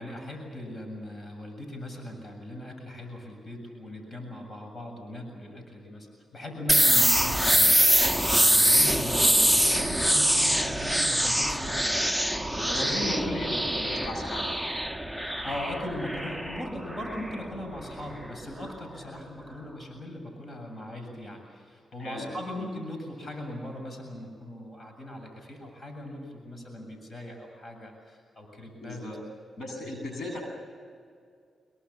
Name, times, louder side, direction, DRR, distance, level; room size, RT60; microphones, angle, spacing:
voice 1, 0.0-6.1 6.3-12.0 12.7-13.6 15.2-29.0, left 1 dB, 40° left, 3 dB, 7.6 m, -39 dB
sound 1, 6.7-18.3, equal, 5° left, 1.2 m, -24 dB
voice 2, 12.6-14.5 22.0-22.3 22.5-22.7 28.8-29.2 29.6-30.4, left 1 dB, 65° left, 3 dB, 8.0 m, -37 dB
26.0 x 23.5 x 7.3 m, 2.2 s
cardioid pair, 60°, 0 cm